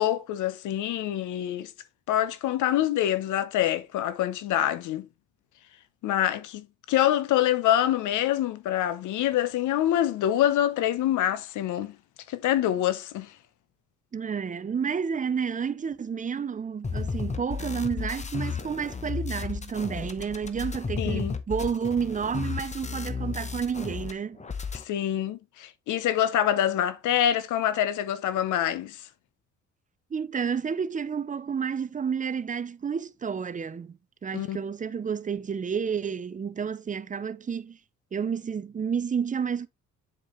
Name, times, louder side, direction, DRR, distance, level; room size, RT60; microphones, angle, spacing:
voice 1, 0.0-1.7 2.1-5.1 6.0-11.9 12.3-13.3 21.0-21.3 24.9-29.0 34.3-34.6, left 11 dB, 80° left, 0.7 m, -25 dB
voice 2, 14.1-24.4 30.1-37.8 38.1-39.7, right 6 dB, 25° right, 0.5 m, -30 dB
sound 1, 16.8-24.1 24.4-24.8, left 5 dB, 25° left, 0.8 m, -33 dB
7.5 x 4.6 x 3.1 m
cardioid pair, 90°, 30 cm